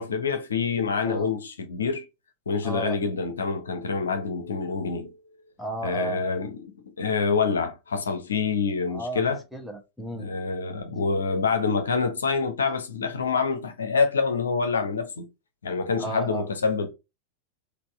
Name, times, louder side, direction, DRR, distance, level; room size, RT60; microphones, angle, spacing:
voice 1, 0.0-2.1 2.5-5.1 5.8-9.4 10.2-15.3 15.6-16.9, left 5 dB, 70° left, 0.8 m, -26 dB
voice 2, 2.6-3.0 5.6-6.2 8.9-10.3 16.0-16.5, right 2 dB, ahead, 1.2 m, -34 dB
4.2 x 2.8 x 3.5 m
figure-of-eight pair, 90°, 0 cm